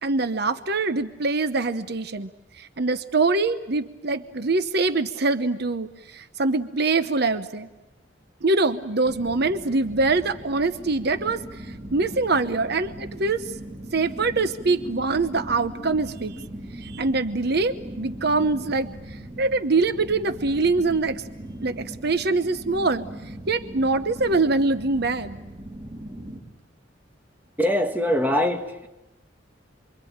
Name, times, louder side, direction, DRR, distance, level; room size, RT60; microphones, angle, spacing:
voice 1, 0.0-2.3 2.6-7.7 8.4-11.7 11.9-13.5 13.9-16.4 16.8-21.2 21.6-23.1 23.5-25.4, right 3 dB, 60° right, 1.0 m, -24 dB
sound 1, 9.0-26.4, right 1 dB, 25° right, 4.5 m, -39 dB
voice 2, 27.6-28.9, left 1 dB, 10° right, 1.8 m, -23 dB
28.0 x 24.0 x 8.9 m
head